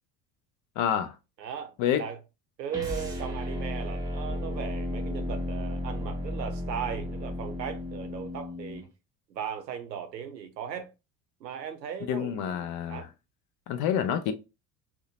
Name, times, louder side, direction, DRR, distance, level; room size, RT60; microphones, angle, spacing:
voice 1, 0.8-1.2 1.8-2.1 12.1-13.1 13.7-14.3, left 9 dB, 40° left, 0.4 m, -28 dB
voice 2, 1.4-2.2 2.6-8.8 9.3-10.9 11.4-13.1, right 8 dB, 85° right, 0.7 m, -37 dB
sound 1, 2.7-8.9, left 1 dB, 10° right, 0.7 m, -34 dB
2.7 x 2.1 x 2.7 m
figure-of-eight pair, 65°, 49 cm